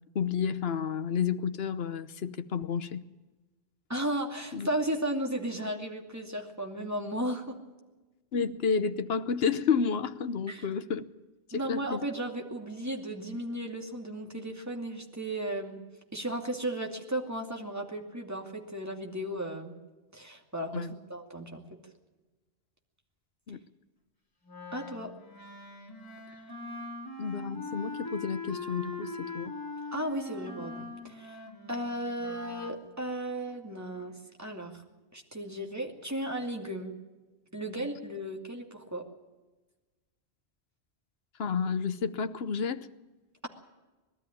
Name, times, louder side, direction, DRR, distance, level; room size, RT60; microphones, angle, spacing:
voice 1, 0.1-3.1 4.5-4.7 8.3-11.0 11.5-12.0 20.7-20.9 23.5-23.6 27.2-29.6 41.4-42.9, left 6 dB, 70° left, 1.1 m, -31 dB
voice 2, 3.9-7.6 10.5-10.7 11.5-15.8 16.1-19.8 20.1-21.9 24.7-25.1 29.9-31.4 31.7-34.8 35.1-36.9 37.5-39.0, right 1 dB, 15° right, 2.5 m, -35 dB
Wind instrument woodwind instrument, 24.5-32.8, left 3 dB, 20° left, 3.1 m, -41 dB
20.5 x 13.0 x 10.0 m
omnidirectional pair, 1.1 m